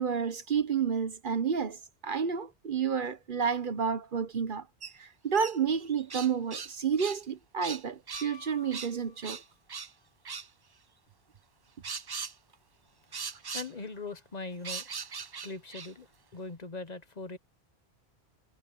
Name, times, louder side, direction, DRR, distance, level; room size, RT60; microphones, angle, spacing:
voice 1, 0.0-4.7 5.0-9.4, right 6 dB, 55° right, 1.1 m, -30 dB
sound 1, 4.8-4.9 5.3-6.7 7.0-7.2 7.6-8.3 8.7-8.9 9.2-9.9 10.2-10.5 11.8-12.3 13.1-13.7 14.6-15.9, right 5 dB, 40° right, 0.3 m, -39 dB
Piano, 8.1-9.7 12.1-12.2, left 5 dB, 75° left, 1.5 m, -52 dB
voice 2, 13.5-14.8 15.4-16.1 16.3-17.4, left 3 dB, 45° left, 1.1 m, -40 dB
omnidirectional pair, 1.1 m